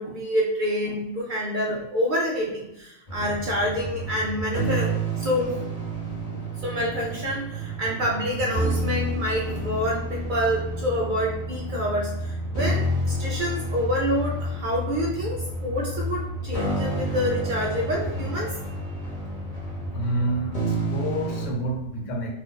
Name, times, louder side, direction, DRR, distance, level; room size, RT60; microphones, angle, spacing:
voice 1, 0.0-5.6 6.3-18.6 18.9-19.0, equal, 65° right, -2 dB, 0.5 m, -27 dB
sound 1, 3.1-21.5, right 1 dB, 30° left, 1.0 m, -30 dB
voice 2, 19.9-22.3, right 1 dB, 70° left, 1 dB, 1.0 m, -28 dB
2.6 x 2.5 x 3.7 m, 0.85 s
omnidirectional pair, 1.4 m